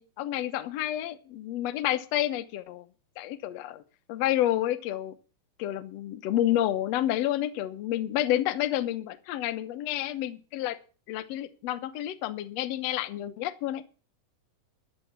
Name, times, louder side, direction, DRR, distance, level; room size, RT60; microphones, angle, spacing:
voice 1, 0.0-2.9 3.2-3.8 4.1-5.2 5.6-10.8 11.1-13.9, left 13 dB, 70° left, 12 dB, 1.9 m, -29 dB
12.0 x 8.4 x 7.2 m, 0.36 s
omnidirectional pair, 3.5 m